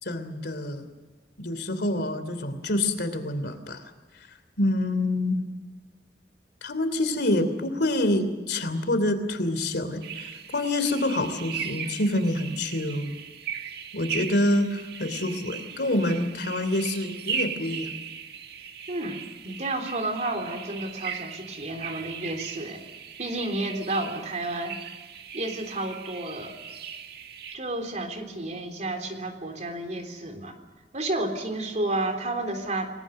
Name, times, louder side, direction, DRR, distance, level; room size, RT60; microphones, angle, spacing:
voice 1, 0.0-0.9 1.4-3.8 4.1-4.3 4.6-5.4 6.6-13.2 13.9-17.9, left 1 dB, 65° left, 10 dB, 3.1 m, -27 dB
sound 1, 10.0-27.6, right 7 dB, 65° right, 1.9 m, -38 dB
voice 2, 18.9-22.8 23.2-24.8 25.3-26.5 27.5-30.6 30.9-33.0, right 2 dB, 40° right, 5 dB, 3.6 m, -31 dB
28.5 x 20.0 x 6.6 m, 1.3 s
head